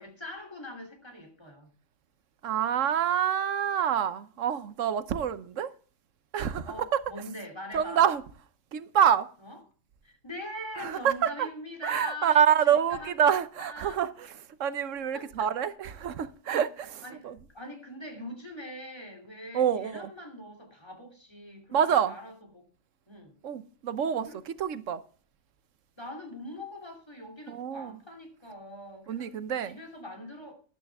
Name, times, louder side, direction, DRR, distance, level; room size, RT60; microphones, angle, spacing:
voice 1, 0.0-1.7 6.6-8.0 9.4-9.6 10.0-13.1 13.6-13.9 15.1-15.5 17.0-22.7 23.1-23.4 24.2-24.4 26.0-29.3 29.6-30.5, left 1 dB, 20° left, 3.0 m, -42 dB
voice 2, 2.4-5.7 6.3-7.0 7.7-8.2 8.7-9.3 10.8-11.5 11.8-14.3 14.6-17.4 19.5-20.1 21.7-22.2 23.4-25.0 27.5-28.0 29.1-29.8, right 8 dB, 80° right, 1.2 m, -27 dB
13.5 x 11.5 x 3.5 m
omnidirectional pair, 1.3 m